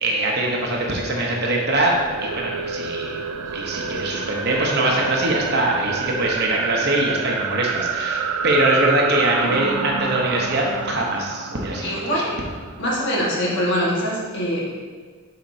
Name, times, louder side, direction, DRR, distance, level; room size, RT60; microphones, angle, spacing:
voice 1, 0.0-2.0 2.2-3.2 3.5-12.3, right 1 dB, 50° right, -1 dB, 0.8 m, -23 dB
sound 1, 1.7-13.1, right 6 dB, 85° right, 0.3 m, -28 dB
voice 2, 11.8-12.4 12.8-14.7, equal, 55° left, -4 dB, 1.5 m, -23 dB
7.2 x 5.0 x 2.7 m, 1.5 s
head